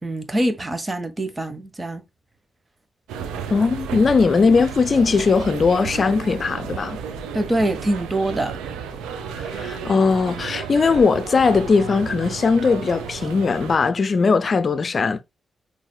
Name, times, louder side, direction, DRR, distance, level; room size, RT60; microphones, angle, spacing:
voice 1, 0.0-2.0 7.3-8.6, right 1 dB, 30° right, 1.1 m, -24 dB
sound 1, 3.1-13.8, right 6 dB, 90° right, 0.7 m, -33 dB
voice 2, 3.5-7.0 9.4-15.2, left 4 dB, 55° left, 0.5 m, -19 dB
6.3 x 3.3 x 2.3 m
supercardioid pair, 45°, 0 cm